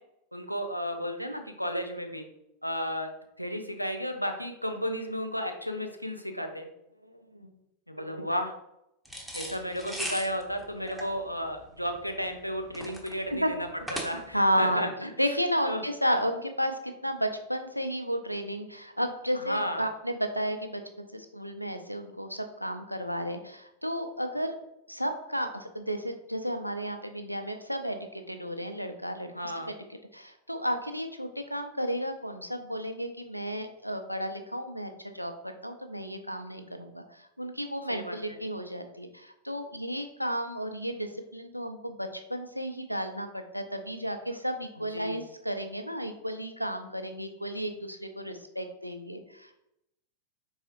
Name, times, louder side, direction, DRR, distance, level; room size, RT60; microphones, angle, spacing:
voice 1, 0.3-2.2 2.6-3.1 3.4-6.7 7.9-8.5 9.3-15.4 15.6-15.8 19.3-19.8 29.3-29.8 37.9-38.4 44.8-45.2, equal, 90° left, 5 dB, 0.5 m, -33 dB
sound 1, 9.1-14.5, equal, ahead, 0.8 m, -39 dB
voice 2, 14.3-14.8 15.2-24.6 24.9-29.3 30.1-49.6, equal, 90° right, 6 dB, 0.5 m, -33 dB
3.9 x 3.8 x 3.0 m, 0.83 s
figure-of-eight pair, 90°, 0 cm